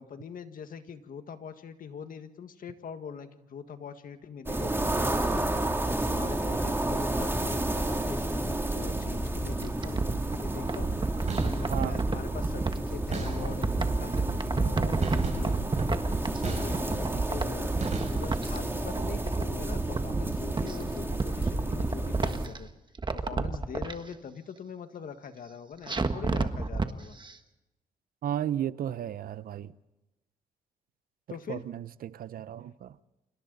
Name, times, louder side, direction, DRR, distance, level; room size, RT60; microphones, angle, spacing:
voice 1, 0.0-5.5 6.0-10.9 11.4-17.7 18.1-22.7 23.1-27.2 31.3-31.6, left 6 dB, 70° left, 1.8 m, -42 dB
sound 1, 4.5-22.5, right 1 dB, 15° right, 2.9 m, -31 dB
sound 2, 9.6-12.8 13.2-16.5 16.7-18.6 18.9-20.7 21.1-22.6 22.9-23.9 25.9-26.9 27.2-27.3, right 3 dB, 30° right, 1.5 m, -30 dB
sound 3, 11.1-11.8 13.1-13.8 15.0-17.2 17.8-18.6, right 3 dB, 50° right, 6.6 m, -35 dB
voice 2, 28.2-29.7 31.5-33.0, right 10 dB, 80° right, 0.8 m, -34 dB
29.0 x 26.0 x 4.1 m
cardioid pair, 75°, 15 cm